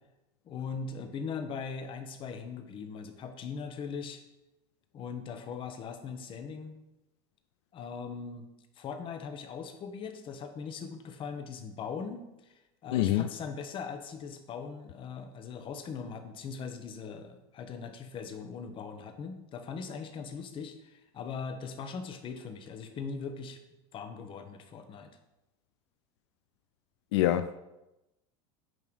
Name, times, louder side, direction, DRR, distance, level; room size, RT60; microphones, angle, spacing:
voice 1, 0.4-4.2 4.9-6.7 7.7-8.5 8.8-12.5 12.8-23.6 23.9-25.2, left 5 dB, 40° left, 1.1 m, -40 dB
voice 2, 12.9-13.3 27.1-27.6, left 13 dB, 85° left, 0.4 m, -25 dB
9.4 x 3.6 x 6.2 m
supercardioid pair, 120°, 14 cm